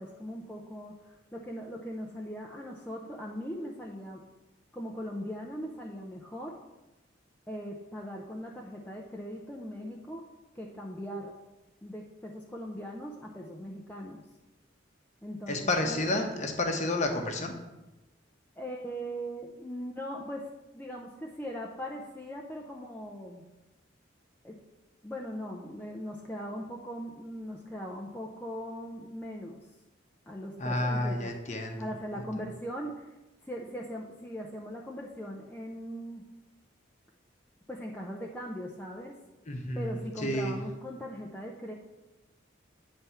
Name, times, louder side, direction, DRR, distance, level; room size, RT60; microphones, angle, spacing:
voice 1, 0.0-4.2 4.7-6.6 7.5-10.3 10.5-11.4 11.8-14.2 15.2-16.5 18.6-20.5 20.7-23.4 24.4-24.6 25.0-29.6 30.3-31.3 31.8-33.2 33.4-36.3 37.7-39.2 39.7-41.7, equal, 10° left, -2 dB, 0.5 m, -40 dB
voice 2, 15.5-17.5 30.6-31.9 39.5-40.5, left 1 dB, 35° left, 4 dB, 0.9 m, -30 dB
9.5 x 3.4 x 5.6 m, 1.0 s
head